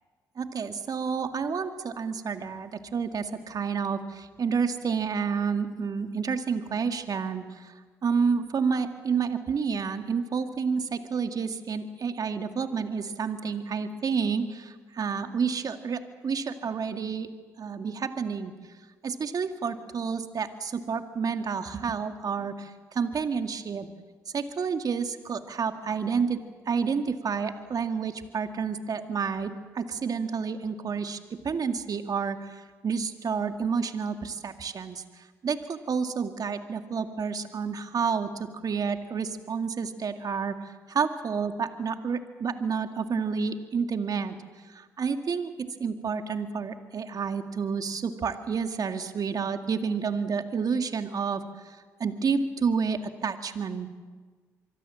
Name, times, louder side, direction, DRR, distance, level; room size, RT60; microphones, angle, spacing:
voice 1, 0.4-7.7 8.0-17.3 17.6-18.5 19.0-23.9 24.3-44.4 44.7-53.9, right 5 dB, 50° right, 7 dB, 2.1 m, -30 dB
25.0 x 23.0 x 7.6 m, 1.5 s
hypercardioid pair, 45°, 8 cm